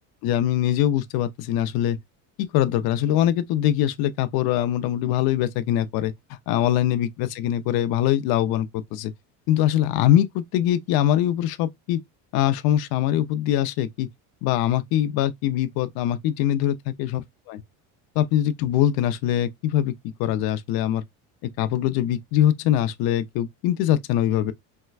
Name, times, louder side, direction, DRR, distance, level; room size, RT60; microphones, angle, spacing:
voice 1, 0.2-2.0 2.4-6.1 6.5-9.1 9.5-12.0 12.3-14.1 14.4-17.6 18.2-21.0 21.4-24.5, left 11 dB, 65° left, 0.7 m, -23 dB
4.5 x 2.1 x 2.4 m
cardioid pair, 130°, 41 cm